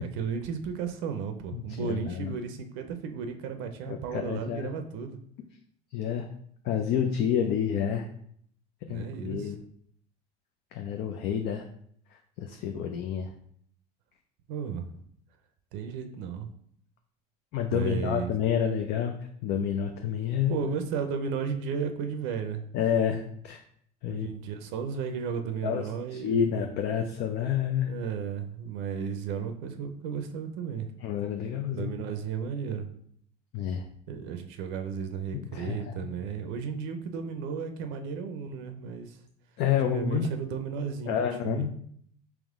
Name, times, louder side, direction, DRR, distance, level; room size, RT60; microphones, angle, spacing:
voice 1, 0.0-5.2 8.9-9.5 14.5-15.0 15.7-16.5 17.7-18.3 20.5-22.7 24.1-26.6 27.9-30.9 31.7-32.9 34.1-39.2 39.8-41.1 41.4-41.6, right 6 dB, 65° right, 7 dB, 0.5 m, -34 dB
voice 2, 1.5-2.4 3.9-4.7 5.9-6.3 6.6-8.1 8.9-9.6 10.7-11.7 12.1-13.3 17.5-19.1 19.4-20.6 22.7-23.6 24.0-24.3 25.6-27.9 31.0-31.9 33.5-33.8 35.3-36.0 39.6-40.3 41.1-41.7, left 8 dB, 55° left, 4 dB, 0.5 m, -29 dB
3.5 x 3.0 x 3.6 m, 0.64 s
hypercardioid pair, 85°, 21 cm